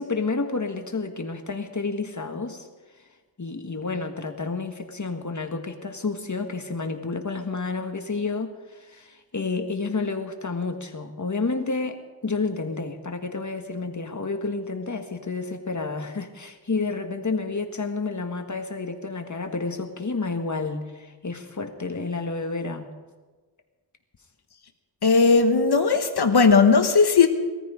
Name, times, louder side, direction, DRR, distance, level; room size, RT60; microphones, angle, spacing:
voice 1, 0.0-2.7 3.4-8.5 8.8-22.9, left 3 dB, 40° left, 5 dB, 1.6 m, -30 dB
voice 2, 25.0-27.3, left 4 dB, 65° left, 6 dB, 1.2 m, -17 dB
19.0 x 14.0 x 5.0 m, 1.3 s
wide cardioid pair, 70°, 43 cm